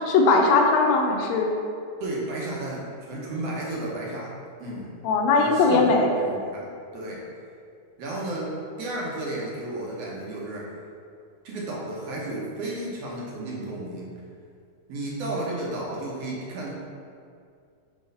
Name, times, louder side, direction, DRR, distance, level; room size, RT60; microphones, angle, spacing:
voice 1, 0.1-1.5 5.0-6.1, left 3 dB, 75° left, 1 dB, 1.8 m, -19 dB
voice 2, 2.0-4.3 4.6-4.9 5.4-7.2 8.0-10.7 11.4-14.1 14.9-16.7, right 2 dB, 65° right, -4 dB, 1.8 m, -33 dB
6.3 x 3.1 x 5.3 m, 2.3 s
omnidirectional pair, 3.4 m